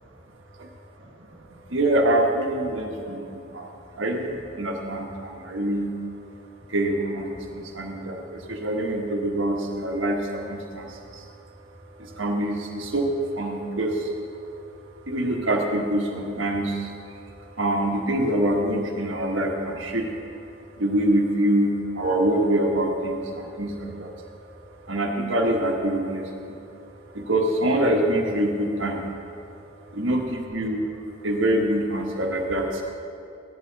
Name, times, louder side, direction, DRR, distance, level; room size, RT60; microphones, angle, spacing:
voice 1, 1.5-5.9 6.7-11.2 12.0-14.1 15.1-16.9 17.2-20.1 20.8-24.1 24.9-26.6 27.1-29.0 29.9-30.8 31.2-32.8, right 1 dB, 75° right, 1 dB, 1.5 m, -25 dB
15.5 x 11.0 x 4.1 m, 2.6 s
head